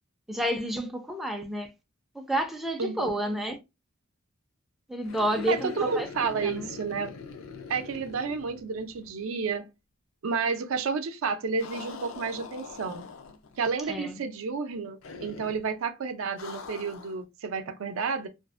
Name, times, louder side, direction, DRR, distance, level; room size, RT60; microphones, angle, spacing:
voice 1, 0.3-1.7 2.1-3.6 4.9-6.7 13.9-14.2, right 1 dB, ahead, 0.3 m, -30 dB
voice 2, 2.8-3.1 5.5-7.1 7.7-9.7 10.2-13.0 13.6-18.3, right 5 dB, 75° right, 0.4 m, -31 dB
sound 1, 5.0-9.2 9.5-9.6 11.6-13.6 15.0-15.7 16.4-17.2, left 5 dB, 75° left, 0.5 m, -43 dB
2.5 x 2.4 x 2.3 m
head